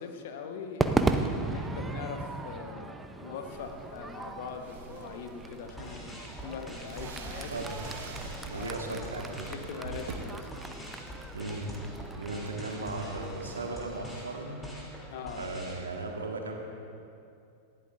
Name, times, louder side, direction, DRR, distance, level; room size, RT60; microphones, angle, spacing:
voice 1, 0.0-7.5 8.2-9.0 9.4-11.1 15.1-15.5, left 6 dB, 55° left, 5 dB, 1.2 m, -42 dB
Crowd / Fireworks, 0.8-15.2, right 3 dB, 10° right, 0.7 m, -36 dB
sound 1, 3.5-10.1, right 4 dB, 55° right, 1.6 m, -46 dB
sound 2, 5.7-15.8, equal, 10° left, 2.9 m, -45 dB
voice 2, 7.5-7.8 8.5-9.5 11.3-11.7 12.1-14.6 15.3-16.6, right 2 dB, 75° right, 2 dB, 1.6 m, -36 dB
19.0 x 14.5 x 2.6 m, 2.5 s
figure-of-eight pair, 90°, 0 cm